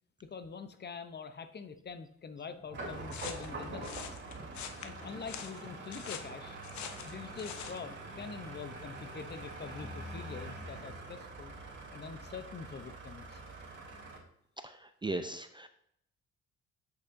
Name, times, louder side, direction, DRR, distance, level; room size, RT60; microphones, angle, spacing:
voice 1, 0.2-4.2 4.8-6.6 7.0-11.5 11.9-13.4, left 5 dB, 35° left, 10 dB, 0.7 m, -45 dB
sound 1, 2.6-12.1, left 1 dB, 15° left, 1.7 m, -55 dB
sound 2, 2.7-14.2, right 2 dB, 40° right, 2.9 m, -45 dB
sound 3, 3.1-7.8, left 8 dB, 70° left, 0.8 m, -44 dB
voice 2, 14.6-15.7, right 2 dB, 15° right, 9 dB, 0.4 m, -38 dB
8.2 x 6.5 x 2.6 m, 0.73 s
cardioid pair, 90°, 30 cm